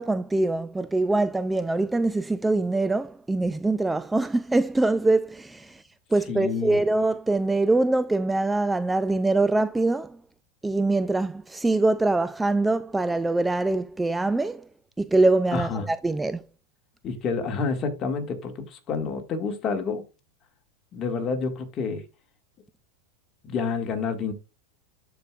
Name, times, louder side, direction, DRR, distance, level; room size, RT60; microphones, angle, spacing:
voice 1, 0.0-5.8 6.1-10.2 10.6-14.6 15.0-16.4, right 2 dB, 10° right, 0.3 m, -23 dB
voice 2, 6.3-6.8 15.5-15.9 17.0-20.0 20.9-22.0 23.4-24.3, left 5 dB, 35° left, 1.8 m, -28 dB
12.0 x 4.7 x 2.4 m
hypercardioid pair, 115°, 0 cm